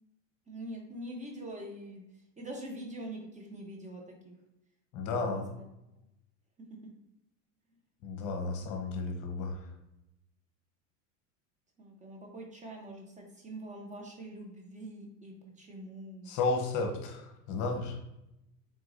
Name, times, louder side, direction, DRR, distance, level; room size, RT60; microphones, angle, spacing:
voice 1, 0.5-2.0 2.4-4.4 5.2-5.6 6.7-6.8 11.8-16.3, right 1 dB, 20° right, 1 dB, 0.8 m, -44 dB
voice 2, 4.9-5.5 8.0-9.6 16.3-18.0, left 3 dB, 50° left, 4 dB, 1.0 m, -33 dB
4.6 x 3.9 x 2.5 m, 0.88 s
supercardioid pair, 115°, 40 cm